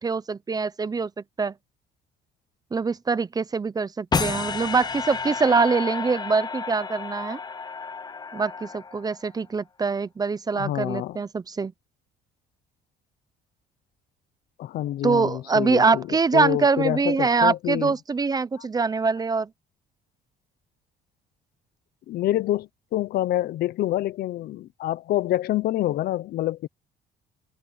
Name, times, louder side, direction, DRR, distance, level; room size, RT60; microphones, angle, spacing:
voice 1, 0.0-1.5 2.7-7.4 8.3-11.7 15.0-19.5, right 4 dB, 20° right, 0.8 m, -24 dB
sound 1, 4.1-9.3, left 5 dB, 25° left, 0.8 m, -31 dB
voice 2, 10.5-11.2 14.6-16.0 16.3-17.9 22.1-26.7, left 14 dB, 70° left, 1.0 m, -27 dB
cardioid pair, 110°, 17 cm